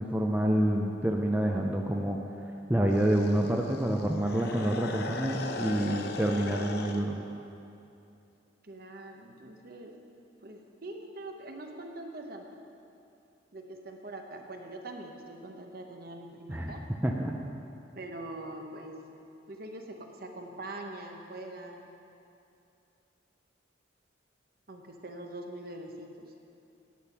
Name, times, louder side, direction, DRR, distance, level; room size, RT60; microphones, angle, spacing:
voice 1, 0.0-2.2 2.7-7.2 16.5-16.7 17.0-17.3, right 1 dB, 10° right, 0 dB, 0.5 m, -27 dB
sound 1, 2.9-7.1, left 2 dB, 55° left, 0.6 m, -38 dB
voice 2, 8.6-9.9 10.4-12.6 13.5-16.8 17.9-19.0 19.5-21.9 24.7-26.1, right 2 dB, 50° right, 3 dB, 1.0 m, -43 dB
10.0 x 9.1 x 5.8 m, 2.7 s
head